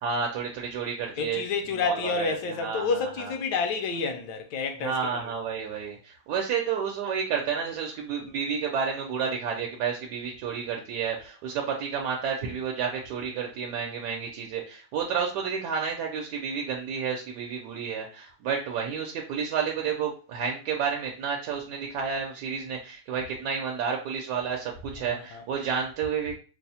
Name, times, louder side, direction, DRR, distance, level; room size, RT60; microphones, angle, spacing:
voice 1, 0.0-3.3 4.8-26.3, right 6 dB, 80° right, 1.2 m, -31 dB
voice 2, 1.2-5.3 25.0-25.4, left 4 dB, 85° left, 1.2 m, -29 dB
4.8 x 2.0 x 2.7 m
omnidirectional pair, 1.8 m